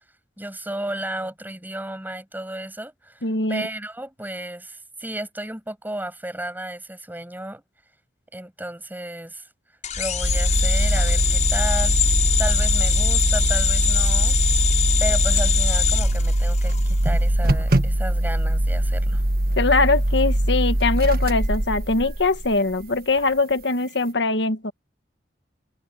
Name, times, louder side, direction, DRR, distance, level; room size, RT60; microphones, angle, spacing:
voice 1, 0.4-7.6 8.3-9.5 10.0-12.0 12.4-14.4 15.0-19.2, right 1 dB, 10° right, 7.2 m, -33 dB
voice 2, 3.2-3.6 19.6-24.7, left 3 dB, 75° left, 1.6 m, -22 dB
sound 1, 9.8-16.9, left 6 dB, 45° left, 6.9 m, -23 dB
sound 2, 10.2-22.8, right 1 dB, 55° right, 1.5 m, -22 dB
head